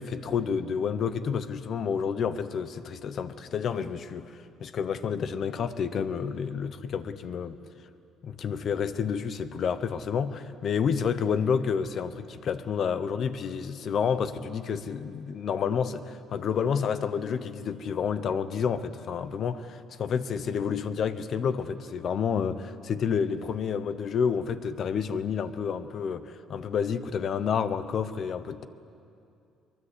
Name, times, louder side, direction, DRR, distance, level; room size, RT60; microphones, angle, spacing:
voice 1, 0.0-7.6 8.2-28.6, left 6 dB, 45° left, 12 dB, 0.9 m, -29 dB
23.5 x 21.5 x 8.3 m, 2.5 s
cardioid pair, 145°, 0 cm